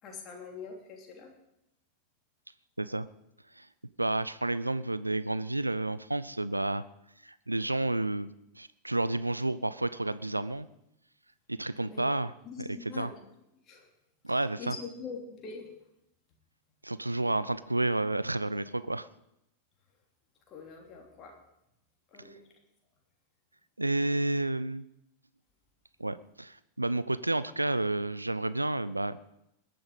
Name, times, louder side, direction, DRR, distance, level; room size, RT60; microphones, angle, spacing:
voice 1, 0.0-1.3 11.8-12.1 12.4-13.2 13.7-13.9 14.3-15.7 20.5-21.4 22.1-22.4, left 5 dB, 30° left, 1 dB, 3.1 m, -44 dB
voice 2, 4.0-6.8 7.2-8.3 8.6-10.7 11.5-12.3 13.0-13.1 14.2-14.7 16.8-19.1 23.8-24.8 26.0-29.2, right 2 dB, 85° right, 15 dB, 0.5 m, -30 dB
21.0 x 9.0 x 5.1 m, 0.84 s
figure-of-eight pair, 90°, 0 cm